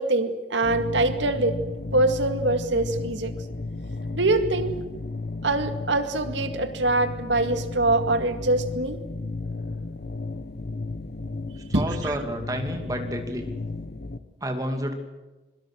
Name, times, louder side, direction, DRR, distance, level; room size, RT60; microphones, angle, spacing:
voice 1, 0.0-1.6 1.9-3.3 4.1-4.8 5.4-9.0 11.7-12.2, right 2 dB, 80° right, 8 dB, 2.1 m, -24 dB
sound 1, 0.6-14.2, left 3 dB, 55° left, 1.1 m, -34 dB
voice 2, 11.7-13.5 14.4-14.9, equal, 20° right, 4 dB, 2.6 m, -30 dB
26.0 x 22.5 x 6.3 m, 1.2 s
head